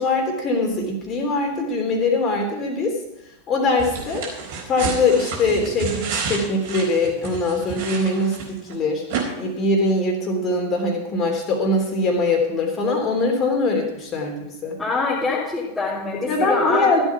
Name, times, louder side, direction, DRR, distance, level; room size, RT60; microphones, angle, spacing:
voice 1, 0.0-3.0 3.5-4.3 4.7-9.0 9.4-14.8 16.3-17.0, left 2 dB, 30° left, 1 dB, 3.2 m, -22 dB
sound 1, 3.8-8.7 9.1-9.2, right 5 dB, 50° right, 4.2 m, -30 dB
voice 2, 14.8-16.9, left 4 dB, 5° left, -10 dB, 3.3 m, -24 dB
14.5 x 8.1 x 6.0 m, 0.89 s
figure-of-eight pair, 90°, 0 cm